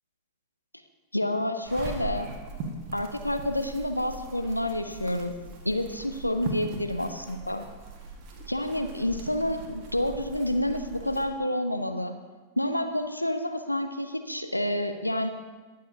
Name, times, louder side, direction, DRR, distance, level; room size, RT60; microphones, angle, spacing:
voice 1, 1.1-2.3 2.9-5.3 5.6-7.6 8.5-12.1 12.6-15.3, left 1 dB, 85° left, 7 dB, 0.7 m, -29 dB
sound 1, 1.6-11.3, right 3 dB, 40° right, 1.6 m, -40 dB
20.0 x 6.7 x 2.8 m, 1.4 s
figure-of-eight pair, 90°, 0 cm